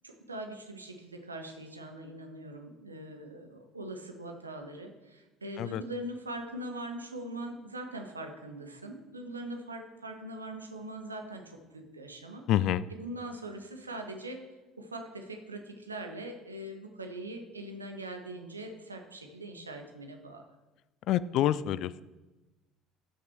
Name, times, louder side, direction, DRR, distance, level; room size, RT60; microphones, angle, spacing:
voice 1, 0.0-12.4 12.9-14.5 14.8-20.4, right 1 dB, 85° right, 4 dB, 1.1 m, -42 dB
voice 2, 12.5-12.8 21.1-22.0, left 12 dB, 50° left, 18 dB, 0.4 m, -27 dB
12.5 x 6.1 x 4.5 m, 1.1 s
figure-of-eight pair, 60°, 0 cm